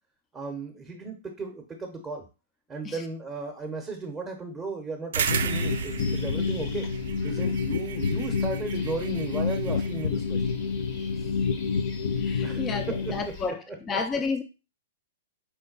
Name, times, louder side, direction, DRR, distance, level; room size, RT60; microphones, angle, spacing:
voice 1, 0.3-2.2 2.7-6.9 7.2-10.6 12.4-13.2 13.7-13.8, right 3 dB, 10° right, 0.8 m, -35 dB
sound 1, 5.1-13.5, left 4 dB, 45° left, 0.9 m, -44 dB
sound 2, 5.1-10.0, right 7 dB, 70° right, 0.3 m, -34 dB
sound 3, 5.3-13.2, left 5 dB, 75° left, 0.4 m, -29 dB
voice 2, 12.2-14.4, left 4 dB, 20° left, 0.5 m, -31 dB
4.4 x 2.2 x 3.9 m
hypercardioid pair, 125°, 0 cm